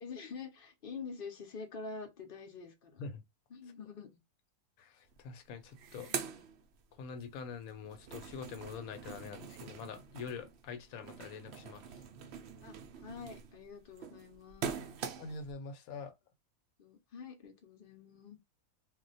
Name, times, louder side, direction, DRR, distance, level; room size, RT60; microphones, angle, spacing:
voice 1, 0.0-3.0 3.5-4.2 6.1-6.4 12.6-12.8 13.0-14.8 16.8-18.4, left 4 dB, 50° left, 0.7 m, -47 dB
voice 2, 4.8-6.1 7.0-11.8 15.2-16.1, left 5 dB, 80° left, 1.1 m, -45 dB
sound 1, 5.1-5.2 5.5-7.3 7.6-15.5, right 7 dB, 65° right, 0.7 m, -44 dB
2.4 x 2.2 x 3.9 m
omnidirectional pair, 1.5 m